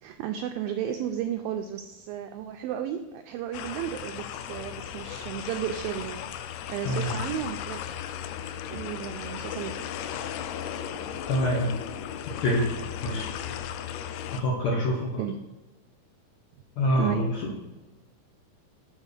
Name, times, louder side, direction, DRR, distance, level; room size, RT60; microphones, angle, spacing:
voice 1, 0.0-6.2 6.7-7.8 8.7-9.7 15.2-15.3 17.0-17.2, right 10 dB, 85° right, 6 dB, 2.0 m, -33 dB
sound 1, 3.5-14.4, left 9 dB, 85° left, 2.6 m, -36 dB
voice 2, 11.3-11.7 12.4-12.6 13.0-13.3 14.3-15.2 16.8-17.2, equal, 70° left, -2 dB, 1.7 m, -25 dB
7.3 x 5.5 x 6.6 m, 1.1 s
omnidirectional pair, 4.7 m